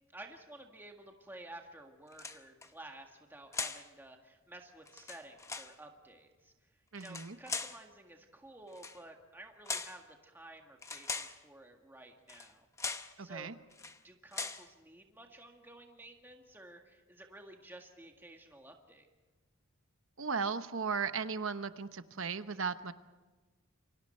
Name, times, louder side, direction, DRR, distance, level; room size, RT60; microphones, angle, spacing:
voice 1, 0.1-12.7 13.2-13.6 14.0-19.1, right 1 dB, 10° right, 2 dB, 1.8 m, -53 dB
sound 1, 2.1-2.7 3.5-3.9 4.9-5.7 7.0-7.8 8.7-9.0 9.7-10.0 10.8-11.4 12.3-12.5 12.8-13.1 13.7-14.0 14.3-14.7, left 4 dB, 15° left, 0.8 m, -40 dB
voice 2, 6.9-7.4 13.2-13.5 20.2-22.9, right 5 dB, 60° right, 11 dB, 1.0 m, -36 dB
28.5 x 24.5 x 4.5 m, 1.2 s
head